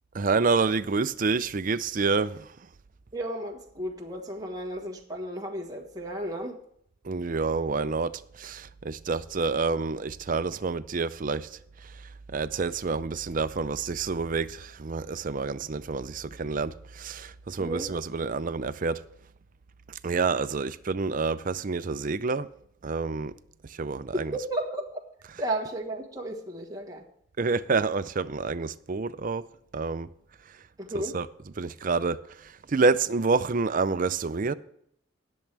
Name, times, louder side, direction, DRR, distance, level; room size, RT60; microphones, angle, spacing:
voice 1, 0.1-2.4 7.1-8.1 8.4-11.5 12.3-14.5 14.8-16.7 17.0-19.0 20.0-22.5 22.8-23.3 23.8-24.1 27.4-29.4 29.7-30.1 31.1-31.3 31.6-32.2 32.7-34.5, right 4 dB, 40° right, 0.5 m, -27 dB
voice 2, 3.1-6.6 17.6-17.9 24.1-24.9 25.4-27.0 30.8-31.2, right 1 dB, 20° right, 1.4 m, -33 dB
19.5 x 7.3 x 3.4 m
head